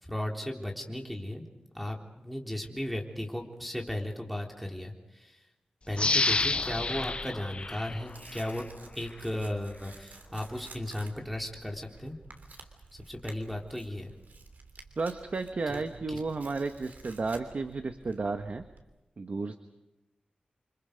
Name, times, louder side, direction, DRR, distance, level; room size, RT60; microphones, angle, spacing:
voice 1, 0.0-1.4 1.7-5.4 5.9-8.7 9.0-12.2 12.9-14.1 15.7-15.8 16.1-16.2, left 1 dB, ahead, 0 dB, 3.7 m, -36 dB
sound 1, 5.9-8.6 9.1-9.2, left 3 dB, 40° left, 0.7 m, -30 dB
Tearing, 6.5-18.8, right 3 dB, 80° right, 3.3 m, -52 dB
voice 2, 15.0-18.6 19.2-19.6, right 3 dB, 60° right, 7 dB, 1.3 m, -33 dB
29.0 x 25.5 x 5.3 m, 0.99 s
wide cardioid pair, 115°, 3 cm